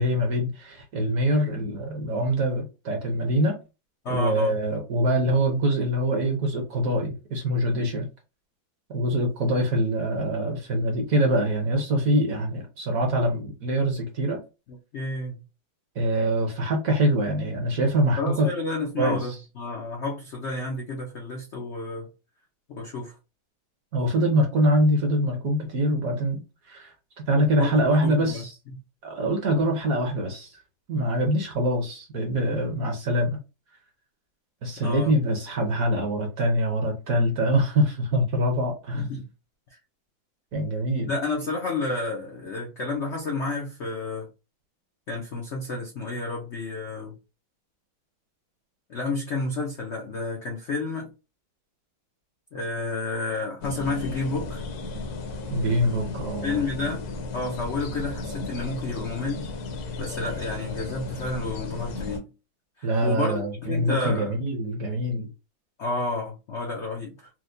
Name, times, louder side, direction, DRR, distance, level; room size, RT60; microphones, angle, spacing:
voice 1, 0.0-3.6 4.1-8.1 8.9-14.4 15.9-18.5 19.0-19.4 23.9-28.5 29.0-30.6 30.9-33.4 34.6-39.1 40.5-41.1 55.5-56.6 62.8-65.3, right 1 dB, 60° right, 1.0 m, -24 dB
voice 2, 4.0-4.5 14.9-15.4 18.2-22.1 22.7-23.2 27.6-27.8 28.0-28.4 34.8-35.2 38.9-39.3 39.7-39.8 41.1-44.3 45.1-47.2 48.9-51.1 52.5-54.6 56.4-57.1 57.3-59.5 60.0-62.3 62.8-64.4 65.8-67.3, left 3 dB, 90° left, 0.6 m, -30 dB
sound 1, 53.6-62.2, left 3 dB, 65° left, 1.0 m, -34 dB
4.5 x 2.1 x 2.6 m
omnidirectional pair, 2.1 m